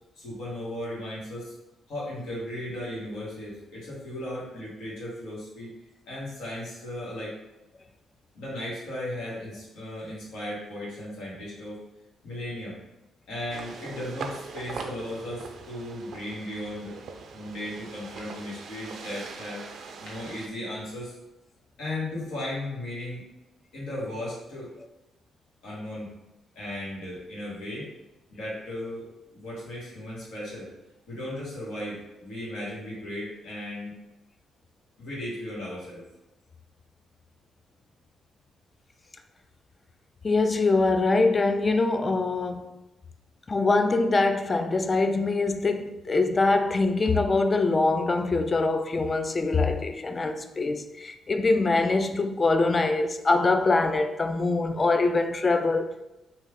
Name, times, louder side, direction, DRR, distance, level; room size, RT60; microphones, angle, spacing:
voice 1, 0.1-1.5 1.9-5.7 6.1-7.3 8.3-11.8 12.2-12.8 13.3-17.0 17.3-19.7 20.0-21.1 21.8-23.2 23.7-24.7 25.6-26.1 26.5-27.9 28.3-29.1 29.3-30.7 31.1-33.9 35.0-36.0, left 1 dB, 80° left, 1.4 m, -36 dB
sound 1, 13.5-20.5, right 5 dB, 65° right, 0.4 m, -41 dB
voice 2, 40.2-42.7 43.5-55.9, left 3 dB, 35° left, 0.4 m, -24 dB
3.0 x 2.4 x 3.5 m
cardioid pair, 75°, 0 cm